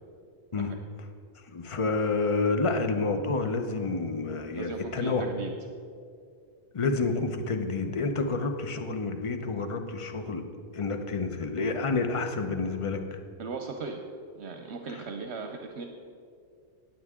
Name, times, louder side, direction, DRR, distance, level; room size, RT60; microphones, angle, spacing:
voice 1, 1.5-5.2 6.7-10.4 10.7-13.2 14.9-15.0, left 3 dB, 30° left, 6 dB, 0.8 m, -29 dB
voice 2, 4.5-5.5 13.4-14.0 14.3-15.9, right 4 dB, 75° right, 4 dB, 1.0 m, -37 dB
19.0 x 7.5 x 3.7 m, 2.3 s
omnidirectional pair, 1.2 m